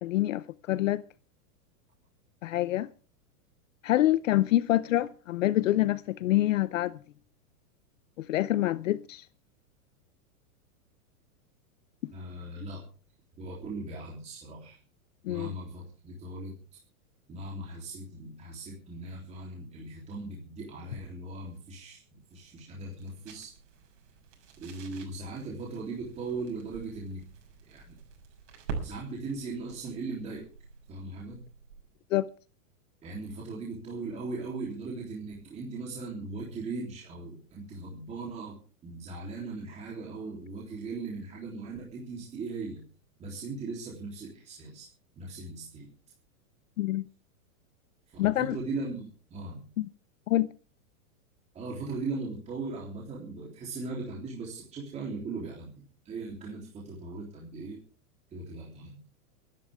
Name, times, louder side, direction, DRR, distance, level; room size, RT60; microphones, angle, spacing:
voice 1, 0.0-1.0 2.4-2.9 3.8-7.0 8.2-9.3 12.0-12.1 15.2-15.5 32.1-32.3 46.8-47.1 48.2-48.6 49.8-49.9 50.3-50.5, left 15 dB, 60° left, 0.7 m, -26 dB
voice 2, 12.1-12.8 13.4-14.8 15.3-16.5 17.3-23.5 24.6-27.3 27.7-28.0 28.8-30.4 30.9-31.4 33.0-42.8 43.2-44.9 45.2-45.9 48.2-49.6 51.5-57.8 58.3-58.9, right 3 dB, 15° right, 3.5 m, -39 dB
sound 1, 21.3-31.9, right 5 dB, 50° right, 6.8 m, -46 dB
25.5 x 12.0 x 3.6 m
supercardioid pair, 175°, 44 cm